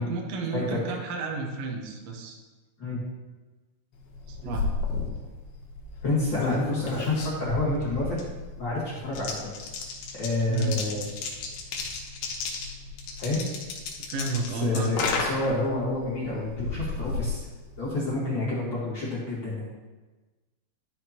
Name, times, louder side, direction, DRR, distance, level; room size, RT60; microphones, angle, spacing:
voice 1, 0.0-2.4 4.3-4.7 10.5-10.7 14.1-15.0, right 4 dB, 90° right, 1 dB, 1.4 m, -31 dB
sound 1, 4.1-18.1, left 4 dB, 75° left, 2.9 m, -34 dB
voice 2, 6.0-8.2 8.6-9.7 10.1-11.0 13.2-13.4 14.6-17.4 17.8-19.6, left 2 dB, 50° left, -7 dB, 1.5 m, -28 dB
12.0 x 6.5 x 3.0 m, 1.2 s
omnidirectional pair, 4.7 m